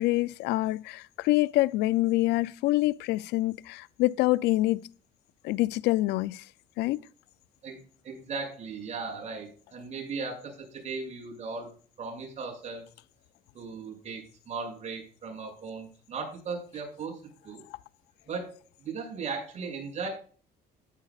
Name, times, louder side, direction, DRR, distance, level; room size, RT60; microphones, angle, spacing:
voice 1, 0.0-4.8 5.4-6.4 6.8-7.0, left 18 dB, 85° left, 0.4 m, -26 dB
voice 2, 7.6-11.7 12.0-12.8 13.5-17.6 18.3-20.1, right 4 dB, 40° right, 6.7 m, -37 dB
14.5 x 10.5 x 2.4 m
cardioid pair, 110°, 17 cm